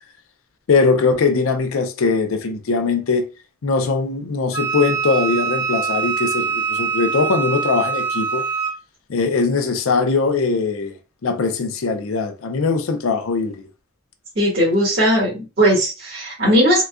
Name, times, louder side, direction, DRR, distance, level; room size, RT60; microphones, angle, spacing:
voice 1, 0.7-3.3 3.6-8.4 9.1-11.0 11.2-13.7, left 4 dB, 85° left, 0.5 m, -20 dB
Wind instrument woodwind instrument, 4.5-8.8, right 6 dB, 25° right, 0.5 m, -23 dB
voice 2, 14.3-16.8, equal, 55° right, 1.5 m, -18 dB
3.8 x 2.4 x 2.2 m
head